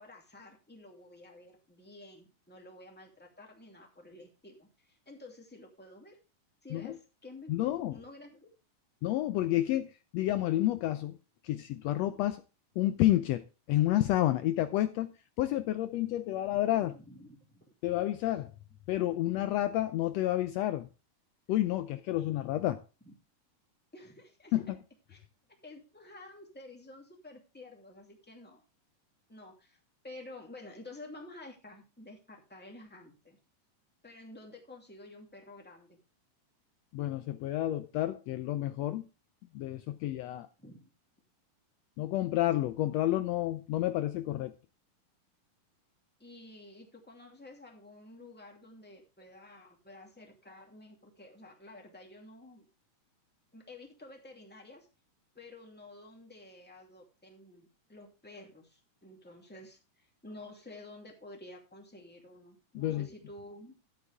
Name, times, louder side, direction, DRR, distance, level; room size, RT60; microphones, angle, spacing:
voice 1, 0.0-6.2 6.6-8.5 16.8-17.7 23.0-23.1 23.9-24.5 25.1-25.2 25.6-28.6 29.3-29.8 30.0-33.4 34.0-36.0 40.6-40.9 46.2-52.7 53.5-54.9 55.3-63.8, left 2 dB, 5° left, 2.0 m, -51 dB
voice 2, 7.5-7.9 9.0-11.2 11.4-12.4 12.8-15.1 15.4-16.9 17.8-18.5 18.9-20.9 21.5-22.8 24.5-24.8 36.9-39.0 39.5-40.5 42.0-44.5 62.7-63.1, left 14 dB, 85° left, 1.5 m, -30 dB
12.5 x 8.3 x 3.4 m
omnidirectional pair, 3.7 m